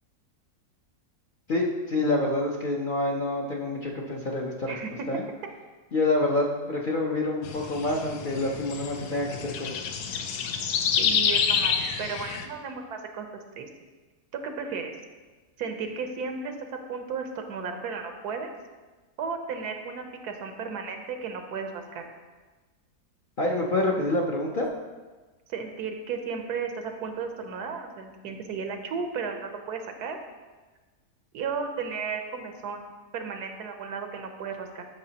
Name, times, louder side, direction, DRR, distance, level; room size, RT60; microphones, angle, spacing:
voice 1, 1.5-4.8 5.1-5.2 5.9-9.8 23.4-24.7, left 2 dB, 50° left, -2 dB, 0.6 m, -27 dB
voice 2, 4.7-5.2 10.9-13.7 14.3-14.9 15.6-18.5 19.2-22.0 25.5-30.2 31.3-32.9 33.1-34.8, right 5 dB, 85° right, 5 dB, 1.3 m, -34 dB
sound 1, 7.4-12.5, left 7 dB, 85° left, 1.2 m, -28 dB
11.5 x 6.0 x 2.9 m, 1.3 s
omnidirectional pair, 1.6 m